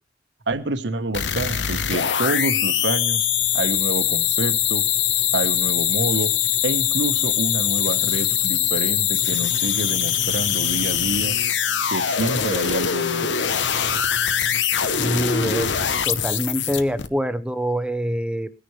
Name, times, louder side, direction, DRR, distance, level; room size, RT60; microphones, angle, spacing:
voice 1, 0.5-3.3 3.5-4.8 5.3-6.3 6.6-11.3 11.9-13.5, right 2 dB, 70° right, 10 dB, 1.3 m, -27 dB
sound 1, 1.1-17.1, left 9 dB, 75° left, 0.9 m, -22 dB
voice 2, 15.0-15.7 16.0-18.5, equal, 5° right, 12 dB, 0.8 m, -25 dB
22.0 x 10.0 x 3.3 m, 0.33 s
head